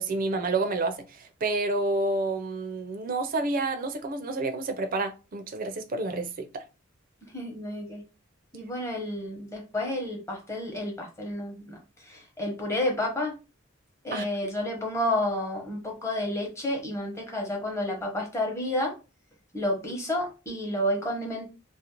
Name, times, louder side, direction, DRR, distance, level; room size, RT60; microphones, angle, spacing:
voice 1, 0.0-6.6 14.1-14.2, right 2 dB, 45° right, 0.4 m, -29 dB
voice 2, 7.3-8.0 8.5-13.3 14.0-19.0 19.5-21.5, left 1 dB, 15° left, 0.8 m, -30 dB
2.5 x 2.0 x 2.8 m
head